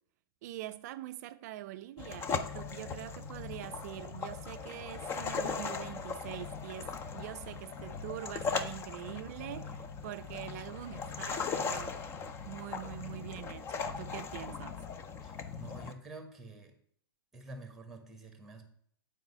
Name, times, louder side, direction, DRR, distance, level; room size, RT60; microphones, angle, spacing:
voice 1, 0.4-12.0 12.5-14.8, right 14 dB, 45° right, 0.4 m, -44 dB
sound 1, 2.0-15.9, left 5 dB, 20° left, 0.5 m, -39 dB
voice 2, 15.2-16.7 17.3-18.7, right 2 dB, ahead, 1.3 m, -48 dB
7.8 x 4.9 x 5.5 m
hypercardioid pair, 135°, 13 cm